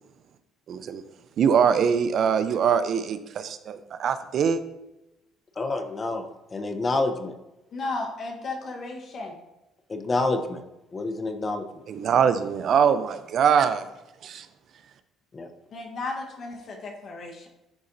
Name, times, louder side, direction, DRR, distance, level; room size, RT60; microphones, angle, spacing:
voice 1, 0.7-1.0 1.4-4.6 11.9-13.9 14.2-14.5, right 7 dB, 55° right, 11 dB, 0.5 m, -23 dB
voice 2, 5.6-7.3 9.9-10.6 10.9-11.6 15.3-15.5, left 2 dB, 30° left, 7 dB, 0.7 m, -28 dB
voice 3, 7.7-9.4 15.7-17.5, left 3 dB, 50° left, 1 dB, 1.1 m, -34 dB
11.0 x 4.1 x 2.6 m, 0.95 s
cardioid pair, 100°, 0 cm